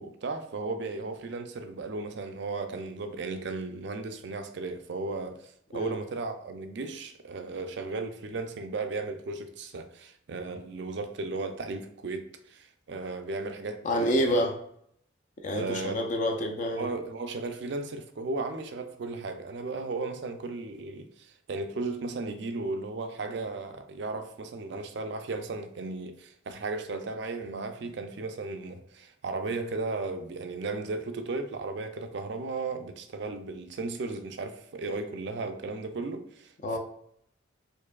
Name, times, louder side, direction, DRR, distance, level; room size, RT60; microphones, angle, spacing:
voice 1, 0.0-14.4 15.5-16.1 16.8-36.5, right 3 dB, 60° right, 0.4 m, -35 dB
voice 2, 13.8-14.5 15.4-16.8 36.6-36.8, equal, 40° left, 0.5 m, -27 dB
4.5 x 2.6 x 2.3 m
head